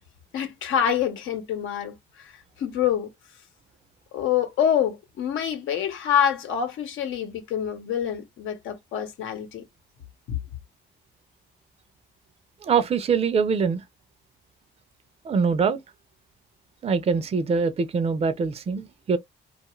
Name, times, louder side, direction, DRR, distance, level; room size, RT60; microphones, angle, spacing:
voice 1, 0.3-2.3 2.6-3.1 4.1-9.6 10.3-10.4, left 9 dB, 80° left, 0.9 m, -26 dB
voice 2, 12.6-13.8 15.2-15.8 16.8-19.2, right 5 dB, 30° right, 0.5 m, -23 dB
2.4 x 2.4 x 3.0 m
cardioid pair, 90°, 20 cm